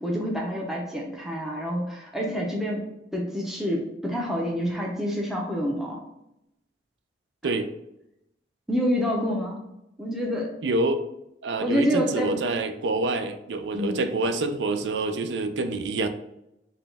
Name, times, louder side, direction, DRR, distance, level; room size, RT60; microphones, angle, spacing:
voice 1, 0.0-2.8 3.1-6.0 7.4-7.6 8.7-9.6 10.0-10.5 11.6-12.4 13.7-14.0, equal, ahead, -2 dB, 0.6 m, -27 dB
voice 2, 10.6-11.0 11.4-16.1, right 2 dB, 75° right, 9 dB, 0.4 m, -27 dB
4.1 x 2.3 x 3.3 m, 0.85 s
head